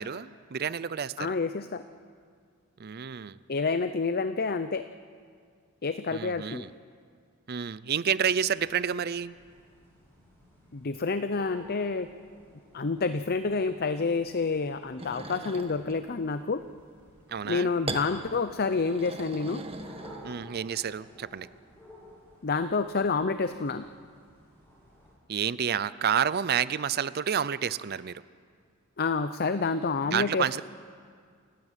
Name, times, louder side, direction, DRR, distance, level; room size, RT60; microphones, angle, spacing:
voice 1, 0.0-1.4 2.8-3.4 6.1-6.7 7.5-9.4 17.3-17.7 20.2-21.5 25.3-28.2 30.1-30.6, right 8 dB, 45° right, 17 dB, 0.5 m, -29 dB
voice 2, 1.2-1.8 3.5-4.9 5.8-6.7 10.7-12.1 12.7-16.6 17.4-19.6 22.4-23.9 29.0-30.6, left 4 dB, 45° left, 11 dB, 0.6 m, -28 dB
sound 1, 8.3-25.1, equal, 10° left, 7.8 m, -55 dB
sound 2, 15.0-16.0 17.9-18.1 18.7-20.6, right 2 dB, 25° right, 1.5 m, -39 dB
29.0 x 14.5 x 9.0 m, 2.1 s
head